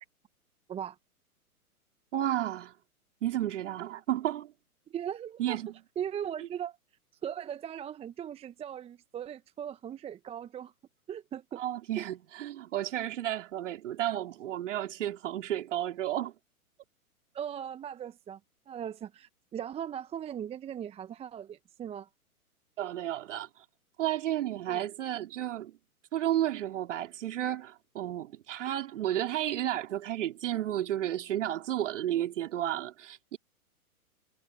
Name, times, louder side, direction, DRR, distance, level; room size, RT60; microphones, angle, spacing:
voice 1, 2.1-2.7 3.2-4.5 5.4-5.7 11.6-16.3 22.8-23.6 24.0-25.7 26.1-33.4, right 12 dB, 55° right, 2.9 m, -32 dB
voice 2, 4.9-5.6 6.0-6.8 7.2-10.7 11.1-11.6 12.0-12.1 17.3-18.4 18.7-22.1 24.7-24.9, right 9 dB, 15° right, 1.1 m, -38 dB
figure-of-eight pair, 115°, 45 cm